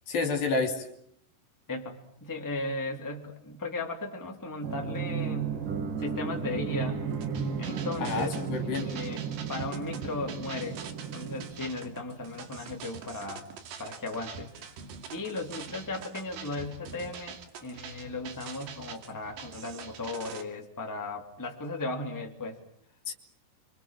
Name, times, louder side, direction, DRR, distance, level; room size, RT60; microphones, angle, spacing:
voice 1, 0.1-0.9 8.0-8.9 23.1-23.2, left 3 dB, 60° left, 5 dB, 4.5 m, -29 dB
voice 2, 1.7-5.6 6.0-7.1 7.6-8.4 8.7-10.8 11.1-13.5 13.8-14.5 15.1-22.6, left 2 dB, 5° left, 1 dB, 2.7 m, -36 dB
sound 1, 4.6-12.2, right 6 dB, 55° right, 4.0 m, -34 dB
sound 2, 7.1-20.4, right 6 dB, 80° right, 4.5 m, -44 dB
30.0 x 25.5 x 7.6 m, 0.69 s
omnidirectional pair, 4.8 m